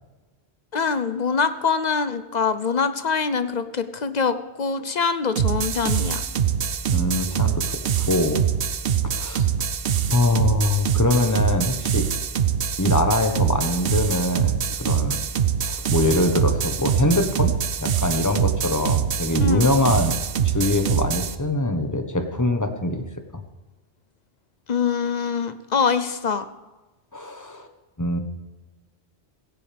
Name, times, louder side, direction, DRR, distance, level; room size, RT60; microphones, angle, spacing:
voice 1, 0.7-6.2 19.4-19.7 24.7-26.5, left 5 dB, 45° left, 12 dB, 0.8 m, -24 dB
sound 1, 5.4-21.4, right 8 dB, 65° right, 0.9 m, -24 dB
voice 2, 6.9-7.6 8.0-8.4 9.0-9.5 10.1-12.1 12.8-15.2 15.6-17.5 17.8-23.0 27.1-27.7 28.0-28.2, left 2 dB, 15° left, 6 dB, 1.3 m, -23 dB
16.5 x 15.5 x 3.5 m, 1.2 s
omnidirectional pair, 1.1 m